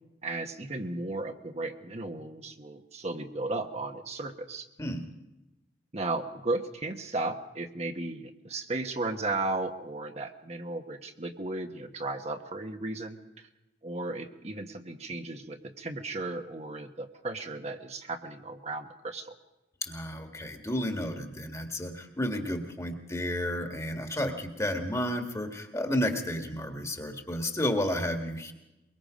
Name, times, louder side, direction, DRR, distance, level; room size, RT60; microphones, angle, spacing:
voice 1, 0.2-4.7 5.9-13.5 13.8-19.3, right 2 dB, 35° right, 4 dB, 1.2 m, -35 dB
voice 2, 19.8-28.5, left 1 dB, 15° left, 4 dB, 1.9 m, -32 dB
23.0 x 23.0 x 5.1 m, 0.98 s
head